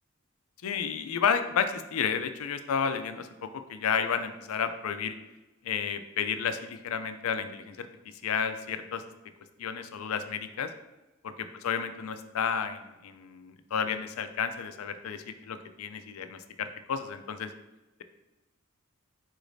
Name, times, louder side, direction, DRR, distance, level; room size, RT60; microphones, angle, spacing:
voice 1, 0.6-5.1 5.6-7.9 8.2-9.0 9.6-10.7 11.6-17.5, left 7 dB, 85° left, 10 dB, 0.4 m, -31 dB
4.9 x 4.0 x 2.6 m, 1.1 s
head